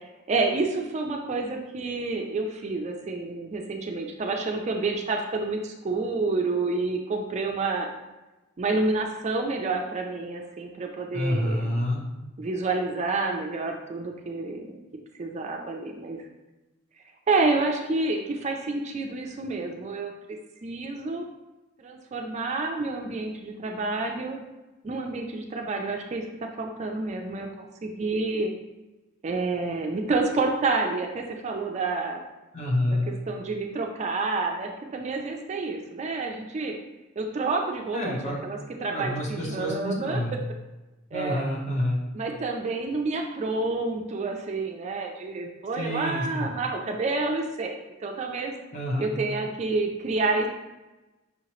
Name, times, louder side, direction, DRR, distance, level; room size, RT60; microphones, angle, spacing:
voice 1, 0.3-7.9 8.6-11.8 12.4-14.7 15.2-16.2 17.3-21.3 21.8-24.4 24.8-28.5 29.2-32.2 33.1-36.7 37.2-40.2 41.1-41.4 42.1-47.7 48.0-48.5 49.0-50.5, right 3 dB, 35° right, 2 dB, 0.4 m, -29 dB
voice 2, 11.1-12.0 32.5-33.1 37.9-38.4 38.9-40.4 41.1-42.0 45.8-46.5 48.7-49.1, left 1 dB, 35° left, -3 dB, 1.0 m, -28 dB
5.5 x 2.8 x 2.9 m, 1.1 s
head